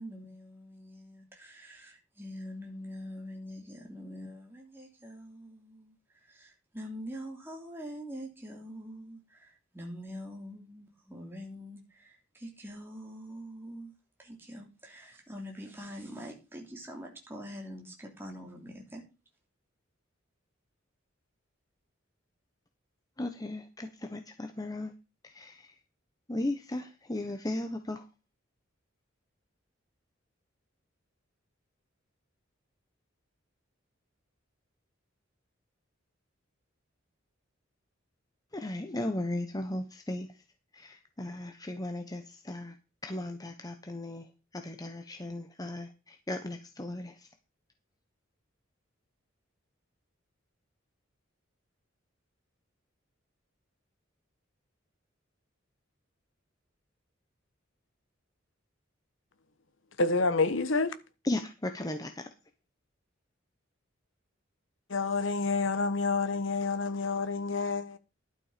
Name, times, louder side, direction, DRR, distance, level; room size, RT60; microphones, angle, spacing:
voice 1, 0.0-13.9 14.2-19.0, equal, 10° right, 3.0 m, -44 dB
voice 2, 23.2-24.9 25.2-25.7 26.3-28.0 38.5-40.3 40.7-42.7 43.0-44.3 44.5-47.1 61.2-62.3, left 1 dB, 20° left, 1.0 m, -36 dB
voice 3, 60.0-61.0 64.9-68.0, left 3 dB, 70° left, 1.2 m, -28 dB
12.0 x 7.0 x 5.1 m
head